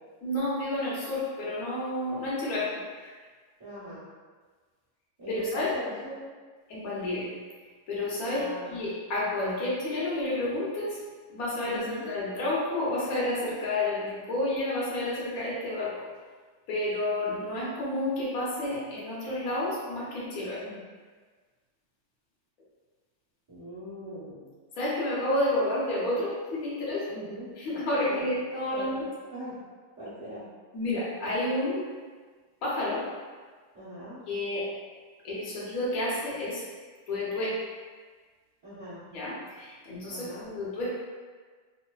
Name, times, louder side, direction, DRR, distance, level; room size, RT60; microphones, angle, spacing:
voice 1, 0.2-2.7 3.0-3.1 5.3-5.7 6.7-7.3 7.9-8.4 8.7-11.0 11.3-16.1 16.7-20.6 24.8-27.0 27.6-29.0 30.7-31.8 32.6-33.0 34.3-34.6 35.2-36.6 37.1-37.5 39.1-41.0, left 1 dB, 60° left, -7 dB, 1.0 m, -30 dB
voice 2, 3.6-4.0 5.2-6.2 8.3-8.8 11.6-12.1 20.5-20.8 23.5-24.4 27.1-27.5 28.0-28.2 28.7-28.9 29.3-29.6 30.0-30.4 33.7-34.2 38.6-39.0 40.1-40.5, equal, 25° right, -15 dB, 0.9 m, -40 dB
3.2 x 2.1 x 2.2 m, 1.5 s
omnidirectional pair, 2.1 m